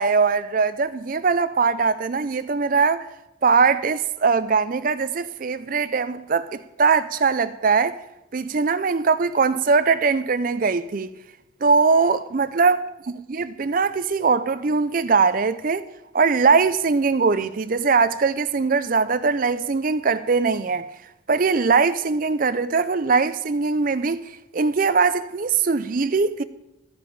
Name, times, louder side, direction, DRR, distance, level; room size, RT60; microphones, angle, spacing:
voice 1, 0.0-3.1 3.4-8.0 8.3-11.1 11.6-12.8 13.1-15.8 16.1-20.9 21.3-24.2 24.5-26.4, right 4 dB, 40° right, 0.5 m, -21 dB
14.0 x 5.1 x 8.7 m
head